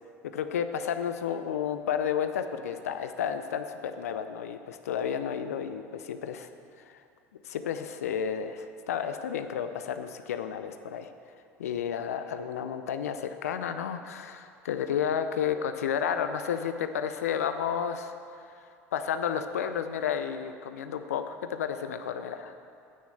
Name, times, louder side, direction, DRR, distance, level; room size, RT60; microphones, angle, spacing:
voice 1, 0.3-6.5 6.8-7.0 7.4-11.1 11.6-22.6, left 8 dB, 80° left, 8 dB, 0.5 m, -32 dB
8.6 x 7.0 x 7.6 m, 2.4 s
hypercardioid pair, 75°, 8 cm